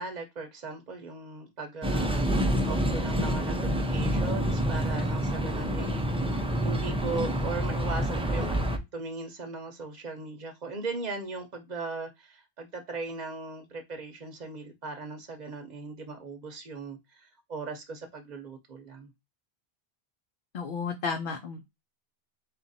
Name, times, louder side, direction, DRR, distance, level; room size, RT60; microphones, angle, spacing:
voice 1, 0.0-19.1, right 3 dB, 45° right, 0.8 m, -38 dB
sound 1, 1.8-8.8, equal, 10° right, 0.3 m, -27 dB
voice 2, 20.5-21.6, left 5 dB, 60° left, 0.8 m, -32 dB
4.1 x 2.5 x 4.0 m
omnidirectional pair, 1.1 m